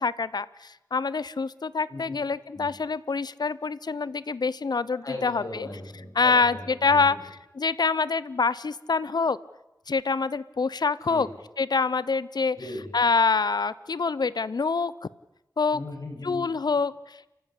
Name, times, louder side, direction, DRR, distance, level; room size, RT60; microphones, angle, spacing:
voice 1, 0.0-5.7 6.2-7.2 7.5-9.4 9.9-11.3 11.6-12.6 12.9-14.9 15.6-15.8 16.2-17.3, left 4 dB, 70° left, 18 dB, 0.7 m, -26 dB
voice 2, 5.0-7.2 11.1-11.3 12.5-12.9 15.7-16.5, left 1 dB, 55° left, 2 dB, 6.7 m, -38 dB
29.0 x 15.0 x 8.3 m, 0.96 s
wide cardioid pair, 85°, 7 cm